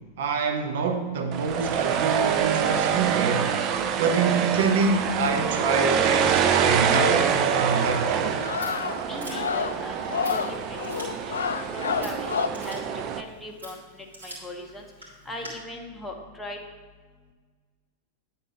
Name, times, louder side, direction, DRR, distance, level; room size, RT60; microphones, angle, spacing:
voice 1, 0.2-3.6 4.0-8.4, right 4 dB, 55° right, 1.0 m, -26 dB
sound 1, 1.3-13.2, right 8 dB, 35° right, 0.5 m, -25 dB
sound 2, 6.9-12.5, left 7 dB, 65° left, 0.3 m, -30 dB
Scissors, 8.1-15.5, right 1 dB, 80° right, 2.7 m, -46 dB
voice 2, 9.0-10.8 11.7-12.8 13.1-14.9 15.3-16.6, left 1 dB, 5° left, 1.0 m, -39 dB
9.9 x 4.3 x 5.2 m
figure-of-eight pair, 90°, 0 cm